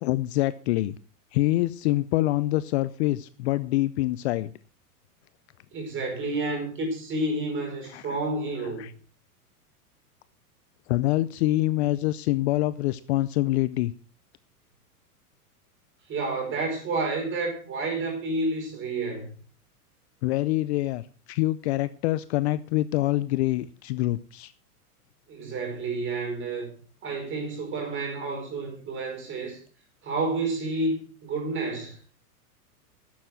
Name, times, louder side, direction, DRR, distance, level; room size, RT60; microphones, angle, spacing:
voice 1, 0.0-0.9 1.3-4.5 7.9-8.2 8.8-8.9 10.9-13.9 20.2-21.0 21.3-24.5, left 16 dB, 45° left, 0.6 m, -25 dB
voice 2, 5.7-8.9 16.1-19.3 25.3-26.7 27.0-29.6 30.0-32.0, right 2 dB, 25° right, 5.2 m, -30 dB
11.5 x 7.9 x 6.1 m
hypercardioid pair, 135°, 46 cm